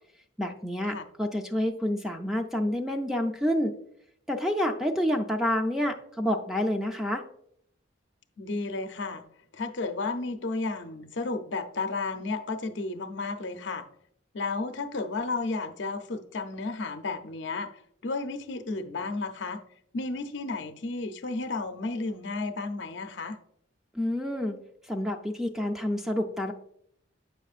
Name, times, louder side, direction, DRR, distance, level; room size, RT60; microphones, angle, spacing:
voice 1, 0.4-3.7 4.3-7.2 23.9-24.6 24.9-26.5, left 1 dB, ahead, 2 dB, 0.4 m, -28 dB
voice 2, 8.4-9.2 9.5-13.8 14.3-19.6 19.9-23.4, left 3 dB, 70° left, 7 dB, 0.6 m, -33 dB
8.1 x 5.9 x 2.4 m, 0.69 s
head